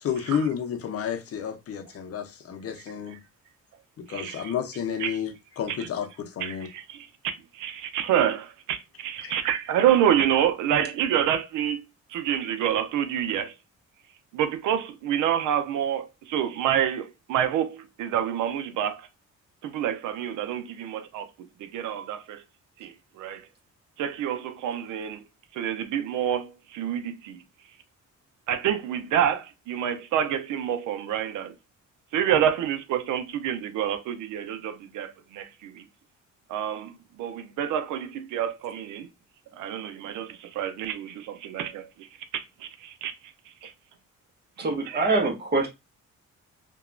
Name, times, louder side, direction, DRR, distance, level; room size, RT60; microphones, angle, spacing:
voice 1, 0.0-3.2 4.0-6.7 9.2-9.3, left 8 dB, 50° left, 0.6 m, -31 dB
voice 2, 4.1-4.5 5.0-5.2 5.7-5.9 6.4-13.5 14.3-19.1 19.6-22.4 22.8-23.5 24.0-25.2 25.5-27.4 28.5-31.5 32.1-35.9 36.5-39.1 39.5-43.7 44.6-45.0, right 10 dB, 85° right, 0.5 m, -28 dB
voice 3, 44.6-45.7, right 3 dB, 35° right, 0.9 m, -24 dB
2.8 x 2.2 x 2.4 m
cardioid pair, 90°, 30 cm